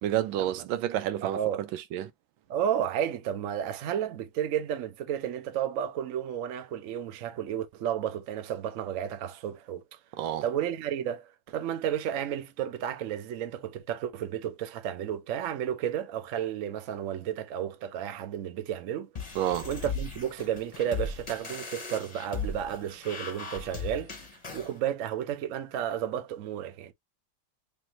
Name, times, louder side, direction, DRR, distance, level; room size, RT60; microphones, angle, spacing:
voice 1, 0.0-1.4 1.9-2.1 10.2-10.4 19.4-19.7, right 12 dB, 90° right, 1.4 m, -29 dB
voice 2, 1.2-1.6 2.5-9.8 10.4-19.1 19.6-24.1 24.5-26.9, right 10 dB, 65° right, 0.8 m, -32 dB
sound 1, 19.2-24.7, left 4 dB, 30° left, 0.8 m, -37 dB
3.4 x 3.2 x 2.9 m
omnidirectional pair, 2.1 m